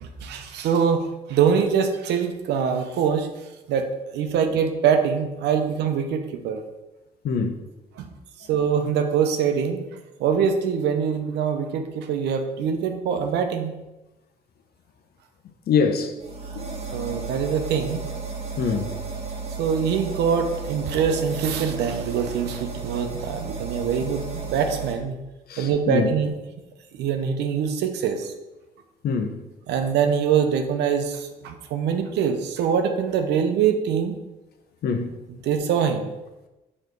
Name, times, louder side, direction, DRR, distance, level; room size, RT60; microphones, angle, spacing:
voice 1, 0.0-3.3 3.7-6.6 8.0-8.1 8.5-9.8 10.2-13.7 16.9-18.0 19.6-25.1 25.6-26.3 27.0-28.3 29.7-34.2 35.4-36.1, right 7 dB, 85° right, 0.7 m, -24 dB
voice 2, 7.2-7.6 15.7-16.1 16.5-17.1 18.6-18.9 25.5-26.1 29.0-29.4 34.8-35.2, left 5 dB, 65° left, 0.8 m, -25 dB
sound 1, 16.2-24.9, right 4 dB, 35° right, 1.4 m, -34 dB
6.7 x 3.2 x 4.6 m
cardioid pair, 75°, 17 cm